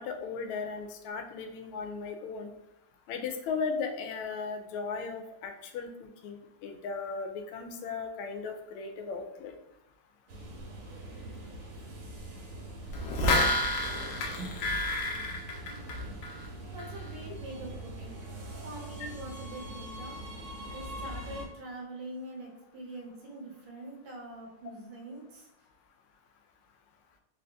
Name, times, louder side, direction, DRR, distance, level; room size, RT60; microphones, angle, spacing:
voice 1, 0.0-2.5 3.1-5.9 6.2-9.5, left 5 dB, 85° left, 5 dB, 1.5 m, -36 dB
sound 1, 10.3-21.4, right 1 dB, 85° right, 1.8 m, -42 dB
sound 2, 12.9-16.5 16.8-16.9, left 1 dB, 65° left, 1.2 m, -29 dB
voice 2, 14.4-14.8 15.3-16.2 16.7-18.2 18.6-20.2 20.7-25.5, right 1 dB, 70° right, -1 dB, 1.5 m, -44 dB
3.9 x 2.6 x 3.3 m, 0.85 s
omnidirectional pair, 2.3 m